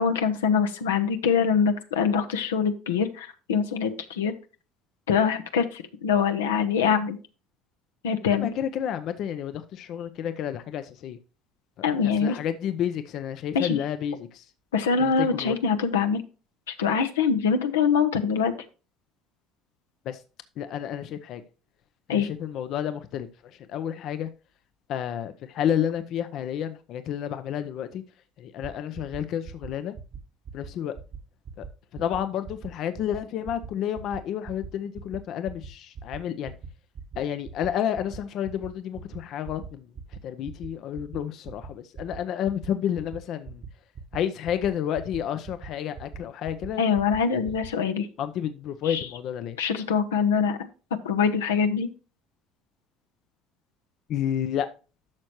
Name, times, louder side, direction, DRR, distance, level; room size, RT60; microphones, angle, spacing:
voice 1, 0.0-4.3 5.1-7.2 8.0-8.5 11.8-12.4 13.5-13.8 14.7-16.2 16.7-18.5 22.1-22.3 46.8-48.1 48.8-49.0 49.6-50.6 51.0-51.9, left 6 dB, 85° left, 0.9 m, -24 dB
voice 2, 8.3-11.2 12.0-14.5 15.0-15.5 20.1-20.2 20.6-21.4 22.1-24.3 24.9-28.0 28.4-29.9 30.5-31.0 31.6-31.7 31.9-36.5 37.2-39.9 40.2-43.6 44.1-46.8 48.2-49.6 54.1-54.7, left 9 dB, 60° left, 0.7 m, -30 dB
sound 1, 28.6-28.7 28.9-29.2 29.4-29.7 29.9-30.2 30.5-30.7 30.9-31.2 31.4-31.7 31.9-32.2 32.4-32.7 33.0-33.2 33.4-33.7 34.0-34.2 34.4-34.7 34.9-35.2 35.5-35.7 35.9-36.2 36.4-36.7 36.9-37.2 37.4-37.7 37.9-38.2 38.4-38.7 38.9-39.2 39.4-39.7 39.9-40.2 40.4-40.7 41.0-41.2 41.4-41.7 41.9-42.2 42.4-42.7 43.0-43.2 43.4-43.7 43.9-44.2 44.5-44.7 44.9-45.2 45.4-45.7 46.0-46.2 46.5-46.7 47.0-47.2 47.5-47.7, right 6 dB, 50° right, 1.3 m, -40 dB
11.5 x 6.4 x 3.1 m
hypercardioid pair, 70°, 0 cm